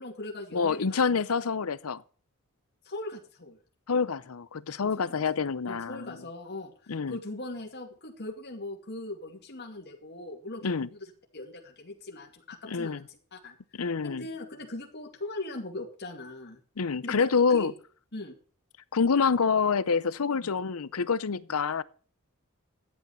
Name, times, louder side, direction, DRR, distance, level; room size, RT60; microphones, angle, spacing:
voice 1, 0.0-1.0 2.8-3.6 4.8-5.2 5.7-11.0 11.3-16.6 17.0-17.7 18.1-18.4 20.3-20.5, left 2 dB, 50° left, 2.5 m, -40 dB
voice 2, 0.5-2.0 3.9-6.2 6.9-7.2 10.6-10.9 12.7-13.0 13.7-14.2 16.8-17.7 18.9-21.8, left 5 dB, 80° left, 0.7 m, -27 dB
12.0 x 8.5 x 5.6 m
head